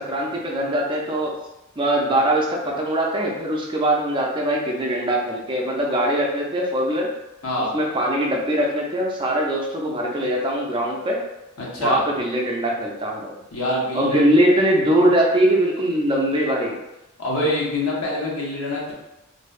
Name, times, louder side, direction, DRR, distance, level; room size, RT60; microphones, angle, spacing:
voice 1, 0.0-1.3 1.8-7.1 7.7-11.2 11.8-13.4 13.9-16.7, right 1 dB, 25° right, -1 dB, 0.4 m, -21 dB
voice 2, 11.6-12.0 13.5-14.4 15.0-15.1 17.2-18.9, left 1 dB, 75° left, -4 dB, 0.7 m, -25 dB
2.6 x 2.2 x 2.4 m, 0.93 s
head